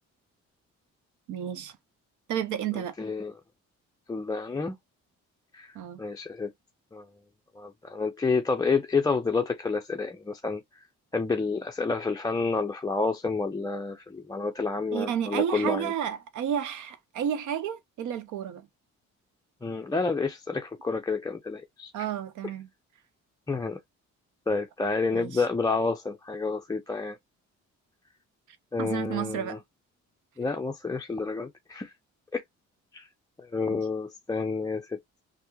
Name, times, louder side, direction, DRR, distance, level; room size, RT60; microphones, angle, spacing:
voice 1, 1.3-1.8 2.3-3.0 5.7-6.0 14.9-18.7 21.9-22.7 25.1-25.4 28.8-29.6 33.7-33.8, right 9 dB, 80° right, 0.7 m, -31 dB
voice 2, 3.0-3.3 4.1-4.8 5.5-6.5 6.9-7.1 7.6-10.6 11.1-15.9 19.6-22.0 23.5-23.8 24.5-27.2 28.7-29.6 30.4-31.9 32.3-32.4 32.9-33.1 33.5-35.0, left 4 dB, 15° left, 0.4 m, -29 dB
3.3 x 2.0 x 3.0 m
cardioid pair, 90°, 30 cm